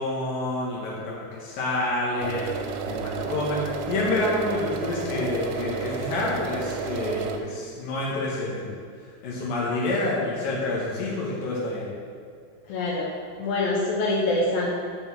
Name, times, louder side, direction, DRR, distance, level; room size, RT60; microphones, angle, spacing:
voice 1, 0.0-2.5 2.8-8.7 9.2-11.8, left 2 dB, 60° left, -6 dB, 2.6 m, -28 dB
sound 1, 2.2-7.4, right 6 dB, 85° right, 3.3 m, -32 dB
voice 2, 12.7-13.1 13.4-14.7, left 2 dB, 90° left, -3 dB, 2.0 m, -25 dB
9.1 x 5.6 x 7.6 m, 2.2 s
omnidirectional pair, 5.8 m